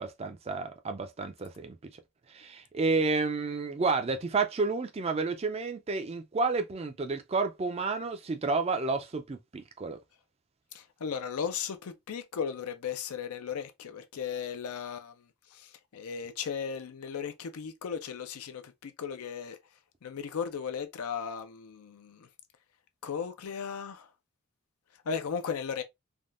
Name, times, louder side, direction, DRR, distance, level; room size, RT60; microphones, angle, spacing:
voice 1, 0.0-1.8 2.3-10.0, right 3 dB, 30° right, 0.4 m, -30 dB
voice 2, 10.7-15.2 15.5-19.6 20.0-22.3 23.0-24.1 25.1-25.8, left 7 dB, 80° left, 0.4 m, -36 dB
3.5 x 2.2 x 2.4 m
head